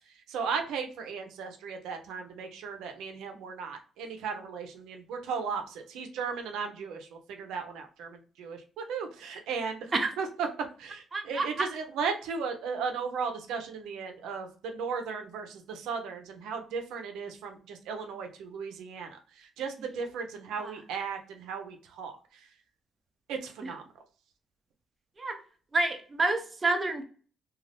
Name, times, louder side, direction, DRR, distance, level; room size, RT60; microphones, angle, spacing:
voice 1, 0.3-10.5 10.8-22.5 23.3-23.8, right 5 dB, 85° right, 5 dB, 0.6 m, -36 dB
voice 2, 11.1-11.7 25.2-25.4 25.7-27.0, right 3 dB, 30° right, 5 dB, 0.6 m, -28 dB
2.5 x 2.3 x 3.3 m, 0.41 s
cardioid pair, 90°, 0 cm